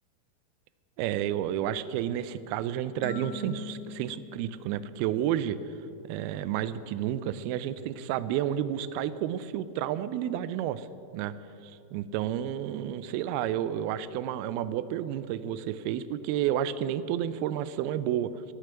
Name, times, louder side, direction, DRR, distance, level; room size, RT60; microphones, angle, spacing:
voice 1, 1.0-5.6 6.1-10.9 11.1-11.3 11.6-18.5, right 11 dB, 85° right, 15 dB, 2.5 m, -31 dB
sound 1, 3.0-5.7, left 5 dB, 60° left, 2.1 m, -43 dB
14.5 x 6.7 x 9.6 m, 2.8 s
omnidirectional pair, 4.4 m